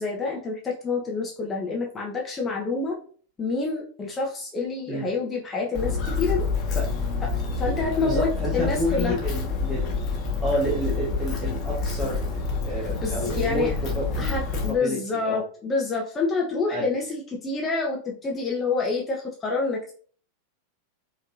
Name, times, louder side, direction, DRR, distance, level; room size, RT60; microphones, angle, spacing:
voice 1, 0.0-3.0 3.4-6.5 7.2-9.2 13.0-13.7 14.2-19.9, left 4 dB, 20° left, -2 dB, 0.9 m, -27 dB
Walk footsteps, 5.7-14.7, left 4 dB, 35° left, 1.3 m, -28 dB
voice 2, 8.0-10.0 10.4-12.3 12.6-15.4 16.7-16.9, equal, 5° right, -7 dB, 1.4 m, -29 dB
5.2 x 3.2 x 2.6 m, 0.43 s
figure-of-eight pair, 90°, 0 cm